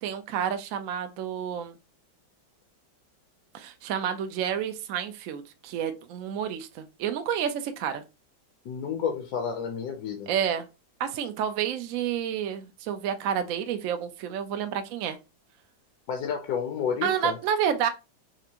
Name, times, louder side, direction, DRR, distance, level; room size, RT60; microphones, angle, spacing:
voice 1, 0.0-1.8 3.5-8.0 10.3-10.7 11.0-15.2 17.0-17.9, right 8 dB, 80° right, 0.7 m, -29 dB
voice 2, 8.6-10.3 16.1-17.4, left 7 dB, 65° left, 1.1 m, -30 dB
4.4 x 2.5 x 2.8 m
omnidirectional pair, 2.0 m